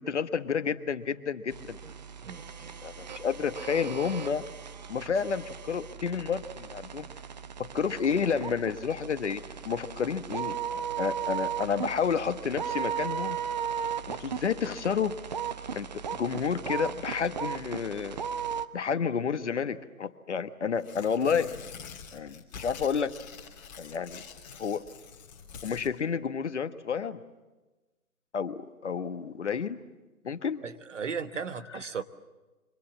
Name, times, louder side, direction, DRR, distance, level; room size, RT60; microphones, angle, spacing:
voice 1, 0.0-1.8 2.8-4.5 4.9-7.1 7.6-13.4 14.1-15.2 15.7-18.2 18.7-21.5 22.1-23.1 23.8-24.2 24.6-24.9 25.6-27.2 28.3-29.8 30.2-30.6 31.7-31.8, left 6 dB, 50° left, 11 dB, 1.3 m, -30 dB
sound 1, 1.5-18.7, right 8 dB, 30° right, 0.8 m, -36 dB
voice 2, 2.2-2.7 30.6-32.0, right 6 dB, 55° right, 10 dB, 1.4 m, -36 dB
Tearing, 20.8-25.9, left 6 dB, 30° left, 3.1 m, -46 dB
27.0 x 25.0 x 7.4 m, 1.2 s
figure-of-eight pair, 145°, 43 cm